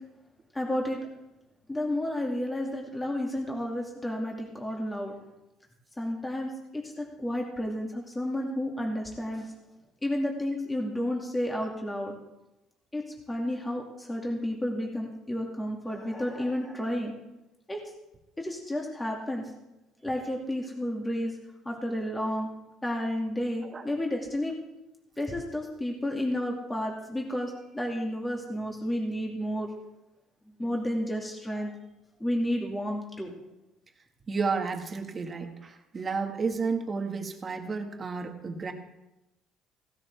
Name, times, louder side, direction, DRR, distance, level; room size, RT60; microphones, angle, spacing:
voice 1, 0.5-1.0 1.7-5.1 6.0-9.5 10.0-12.2 12.9-17.1 17.7-17.8 18.4-19.5 20.0-21.4 21.7-22.5 22.8-24.5 25.2-29.7 30.6-31.7 32.2-33.3, left 1 dB, 10° left, -1 dB, 2.2 m, -31 dB
voice 2, 34.3-38.7, right 4 dB, 30° right, 4 dB, 1.6 m, -32 dB
16.5 x 12.0 x 3.4 m, 0.96 s
cardioid pair, 120°, 0 cm